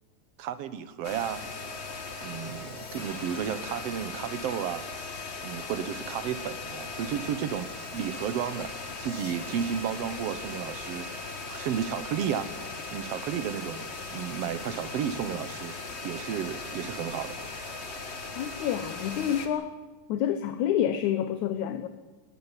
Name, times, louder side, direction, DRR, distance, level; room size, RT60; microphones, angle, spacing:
voice 1, 0.4-1.4 2.2-4.8 5.4-8.7 9.0-11.1 11.5-12.5 12.9-15.7 16.0-17.4, right 9 dB, 65° right, 14 dB, 1.7 m, -33 dB
sound 1, 1.0-19.5, left 3 dB, 30° left, 1.2 m, -38 dB
voice 2, 18.4-19.7 20.1-21.9, left 10 dB, 75° left, 11 dB, 2.2 m, -28 dB
19.0 x 15.5 x 9.8 m, 1.2 s
omnidirectional pair, 3.7 m